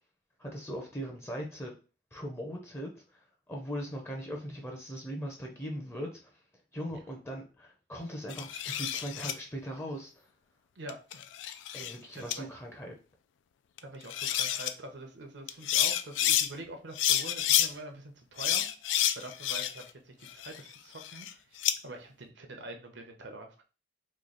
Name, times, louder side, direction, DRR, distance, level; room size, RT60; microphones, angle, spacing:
voice 1, 0.4-1.7 2.1-6.3 6.7-10.3 11.7-13.0, equal, 15° left, 1 dB, 0.6 m, -39 dB
sound 1, 8.3-9.3 10.9-11.9 12.3-12.4 13.8-13.9 14.1-14.7 15.5-16.5 16.9-17.7 18.4-19.9 20.2-21.7, left 11 dB, 85° left, 0.3 m, -29 dB
voice 2, 10.7-11.3 12.2-12.5 13.8-18.7 19.1-23.6, right 1 dB, 75° right, 5 dB, 0.8 m, -45 dB
3.1 x 2.3 x 3.8 m, 0.33 s
head